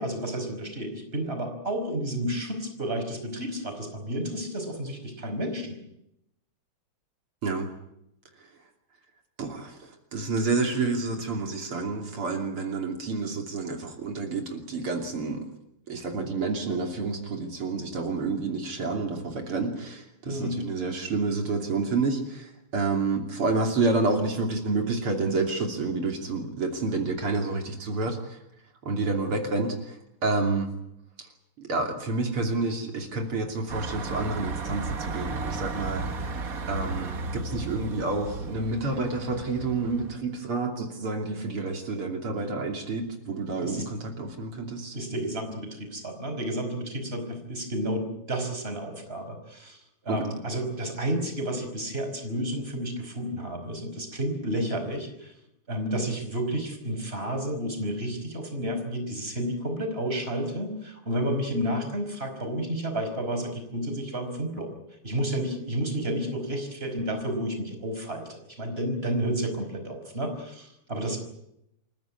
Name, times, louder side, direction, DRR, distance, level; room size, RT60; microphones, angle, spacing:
voice 1, 0.0-5.8 20.3-20.6 43.6-43.9 44.9-49.8 50.0-55.3 55.7-64.7 65.0-71.2, right 1 dB, 25° right, 5 dB, 5.3 m, -31 dB
voice 2, 9.4-15.5 15.9-28.4 28.8-30.7 31.2-31.3 31.6-36.4 36.7-45.0 50.1-50.3, right 3 dB, 75° right, 3 dB, 3.8 m, -29 dB
sound 1, 33.7-40.2, right 4 dB, 45° right, 1.8 m, -34 dB
27.5 x 16.0 x 9.7 m, 0.80 s
omnidirectional pair, 2.4 m